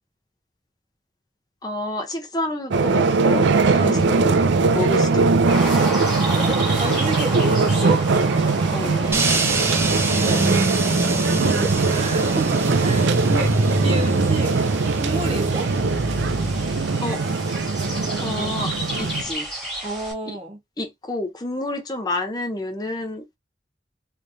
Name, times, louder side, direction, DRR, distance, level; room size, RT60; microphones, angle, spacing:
voice 1, 1.6-4.4 4.7-5.5 8.7-9.2 17.0-17.2 18.2-18.7 19.0-19.5 20.3-20.4 20.8-23.2, left 2 dB, 20° left, 0.8 m, -29 dB
sound 1, 2.7-19.2, right 4 dB, 85° right, 0.5 m, -21 dB
voice 2, 3.8-4.1 6.3-8.0 8.7-9.3 10.2-10.4 11.3-14.5 14.9-15.7 19.8-20.6, right 2 dB, 30° right, 1.2 m, -31 dB
sound 2, 5.5-20.1, right 1 dB, ahead, 1.6 m, -33 dB
sound 3, 9.1-19.3, right 2 dB, 15° right, 0.6 m, -27 dB
3.4 x 3.1 x 2.6 m
head